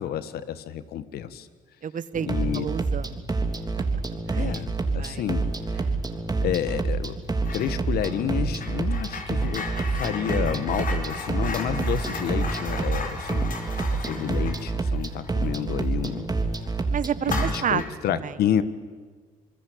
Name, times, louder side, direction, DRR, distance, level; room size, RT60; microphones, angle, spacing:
voice 1, 0.0-1.5 2.3-2.7 4.3-5.5 5.7-5.8 6.4-7.2 7.5-13.5 13.9-16.3 17.3-18.6, left 10 dB, 75° left, 13 dB, 1.6 m, -29 dB
voice 2, 1.8-2.3 2.5-3.2 3.8-3.9 4.3-4.6 4.9-5.3 5.8-6.0 16.9-18.3, right 8 dB, 55° right, 17 dB, 1.2 m, -30 dB
sound 1, 2.1-17.6, right 3 dB, 25° right, 3.5 m, -28 dB
sound 2, 7.4-7.7 8.0-16.2 16.5-16.7 17.2-18.0, left 4 dB, 55° left, 4.8 m, -36 dB
sound 3, 9.9-13.3, equal, 15° left, 4.6 m, -49 dB
27.0 x 20.5 x 8.7 m, 1.5 s
supercardioid pair, 60°, 16 cm